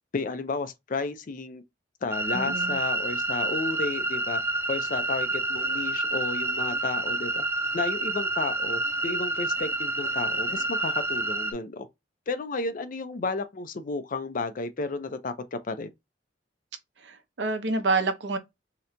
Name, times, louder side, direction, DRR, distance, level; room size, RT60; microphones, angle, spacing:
voice 1, 0.1-1.6 2.0-4.4 4.7-7.4 7.7-11.9 12.3-15.9, left 3 dB, 50° left, 0.5 m, -32 dB
sound 1, 2.1-11.5, right 2 dB, 15° right, 0.3 m, -28 dB
voice 2, 2.3-2.8 17.0-18.4, right 3 dB, 75° right, 0.7 m, -28 dB
sound 2, 4.9-5.1 5.6-5.8 6.7-7.0 7.6-7.9 8.8-9.1 9.6-11.1, left 3 dB, 25° left, 1.1 m, -53 dB
2.9 x 2.2 x 3.7 m
head